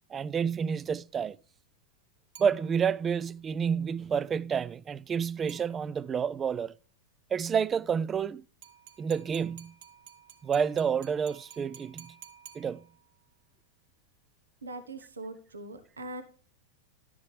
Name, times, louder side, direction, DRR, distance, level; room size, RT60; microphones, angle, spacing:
voice 1, 0.1-1.4 2.4-6.7 7.3-8.4 9.0-9.7 10.4-12.1 12.5-12.8, right 7 dB, 25° right, 0.4 m, -29 dB
sound 1, 2.3-3.2 5.5-6.2 8.6-13.2, right 9 dB, 65° right, 1.3 m, -53 dB
voice 2, 14.6-16.2, right 2 dB, 85° right, 1.1 m, -41 dB
12.0 x 6.9 x 3.4 m
hypercardioid pair, 100°, 0 cm